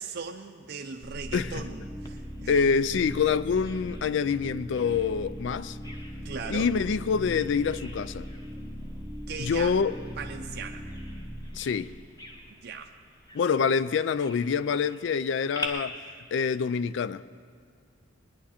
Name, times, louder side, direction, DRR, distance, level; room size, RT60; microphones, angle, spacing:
voice 1, 0.0-2.5 6.2-6.7 9.3-9.8 10.2-10.9 12.6-12.9, right 5 dB, 55° right, 0.5 m, -38 dB
sound 1, 1.0-12.8, equal, 45° left, 1.9 m, -40 dB
Bird vocalization bird call bird song, 2.1-15.7, left 1 dB, 20° left, 1.0 m, -47 dB
voice 2, 2.5-5.8 6.5-8.2 9.4-9.9 11.5-11.9 13.3-15.9 16.3-17.2, left 6 dB, 65° left, 0.4 m, -26 dB
20.0 x 10.0 x 4.3 m
head